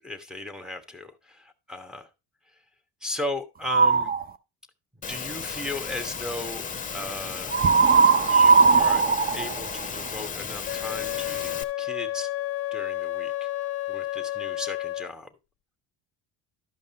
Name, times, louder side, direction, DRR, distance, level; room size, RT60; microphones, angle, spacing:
voice 1, 0.0-2.0 3.0-4.1 5.1-6.6 6.9-7.5 8.3-9.1 9.3-11.5 11.8-12.3 12.7-13.3 13.9-15.3, left 2 dB, ahead, 8 dB, 1.2 m, -36 dB
sound 1, 3.6-4.2 7.5-10.3, right 5 dB, 25° right, 0.6 m, -19 dB
Engine / Mechanisms, 5.0-11.6, left 6 dB, 20° left, 0.9 m, -35 dB
Wind instrument woodwind instrument, 10.6-15.1, left 15 dB, 40° left, 0.5 m, -31 dB
12.0 x 5.3 x 3.9 m, 0.26 s
cardioid pair, 105°, 38 cm